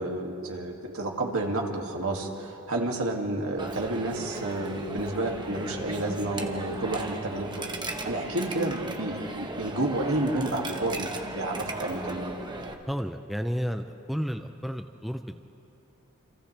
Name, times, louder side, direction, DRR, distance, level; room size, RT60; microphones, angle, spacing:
voice 1, 0.0-7.6 8.0-12.3, right 2 dB, 65° right, 0 dB, 2.3 m, -30 dB
Coin (dropping), 3.6-12.7, right 2 dB, 20° right, 1.1 m, -37 dB
voice 2, 12.9-15.4, equal, ahead, 6 dB, 0.5 m, -32 dB
29.5 x 26.5 x 3.4 m, 2.9 s
head